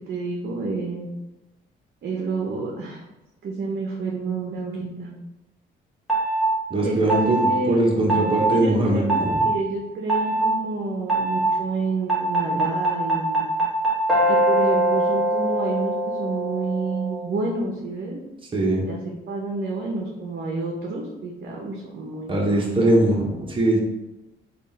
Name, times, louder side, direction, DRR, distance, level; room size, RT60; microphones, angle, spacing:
voice 1, 0.1-1.1 2.0-3.0 3.4-5.1 6.8-7.8 8.5-9.0 9.4-13.5 14.3-18.2 18.9-19.0 19.3-22.9, right 3 dB, 55° right, -1 dB, 0.7 m, -29 dB
sound 1, 6.1-6.4 7.1-7.5 8.1-8.5 9.1-9.4 10.1-10.4 11.1-11.5 12.1-17.2, right 1 dB, ahead, 1.3 m, -22 dB
voice 2, 6.7-9.4 18.5-18.9 22.3-23.8, right 1 dB, 25° right, -3 dB, 1.0 m, -21 dB
3.6 x 2.4 x 4.0 m, 0.99 s
cardioid pair, 90°, 20 cm